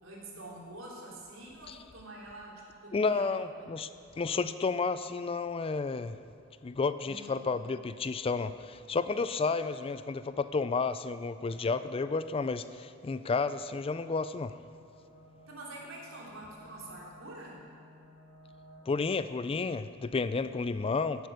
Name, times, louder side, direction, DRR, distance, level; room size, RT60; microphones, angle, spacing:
voice 1, 0.0-3.7 7.0-7.4 15.5-17.6, right 1 dB, 80° right, -3 dB, 3.3 m, -46 dB
voice 2, 2.9-3.9 4.2-6.2 6.6-14.5 18.9-21.3, left 4 dB, 30° left, 13 dB, 0.4 m, -31 dB
sound 1, 11.5-19.2, left 1 dB, 60° left, 2.1 m, -58 dB
15.5 x 8.0 x 6.5 m, 2.7 s
head